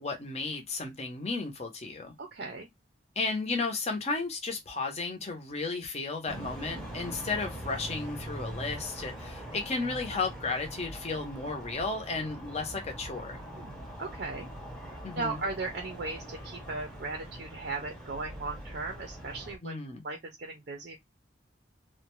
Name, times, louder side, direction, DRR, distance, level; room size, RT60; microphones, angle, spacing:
voice 1, 0.0-2.1 3.2-13.4 15.0-15.4 19.6-20.0, left 3 dB, 35° left, 0.6 m, -34 dB
voice 2, 2.2-2.7 13.6-14.5 14.8-19.8 20.0-21.0, right 3 dB, 50° right, 0.5 m, -37 dB
Traffic ambience, 6.3-19.6, right 1 dB, 5° left, 0.8 m, -43 dB
2.5 x 2.1 x 3.0 m
head